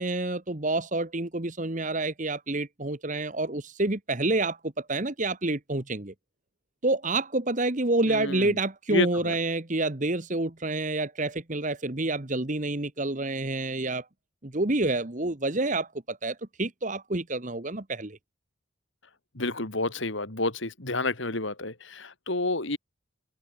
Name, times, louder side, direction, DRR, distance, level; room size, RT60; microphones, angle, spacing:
voice 1, 0.0-6.1 6.8-14.0 14.4-18.2, right 2 dB, 35° right, 1.4 m, -28 dB
voice 2, 8.1-8.5 8.9-9.3 19.3-22.8, left 2 dB, 65° left, 3.0 m, -29 dB
open air
head